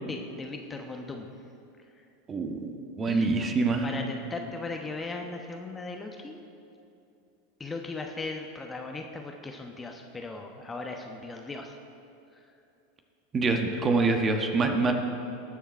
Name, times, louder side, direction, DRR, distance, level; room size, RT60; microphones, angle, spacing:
voice 1, 0.1-1.3 2.0-2.1 3.1-3.3 3.8-6.4 7.6-11.8 12.3-12.4, left 3 dB, 15° left, 3 dB, 1.0 m, -38 dB
voice 2, 2.3-3.9 13.3-14.9, right 3 dB, 25° right, 4 dB, 1.4 m, -25 dB
19.5 x 7.2 x 4.5 m, 2.7 s
figure-of-eight pair, 85°, 0 cm